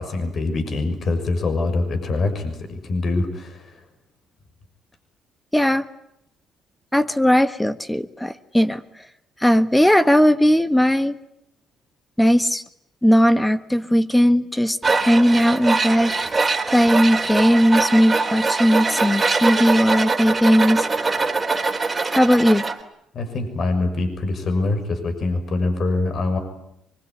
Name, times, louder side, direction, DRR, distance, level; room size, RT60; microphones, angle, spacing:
voice 1, 0.0-3.7 23.1-26.4, left 2 dB, 55° left, 7 dB, 6.6 m, -24 dB
voice 2, 5.5-5.8 6.9-8.8 9.4-11.1 12.2-12.6 13.0-21.2 22.1-22.6, equal, 5° left, 11 dB, 1.5 m, -18 dB
Tools, 14.8-22.8, right 3 dB, 25° right, 3.4 m, -23 dB
24.5 x 22.5 x 9.8 m, 0.78 s
supercardioid pair, 80°, 0 cm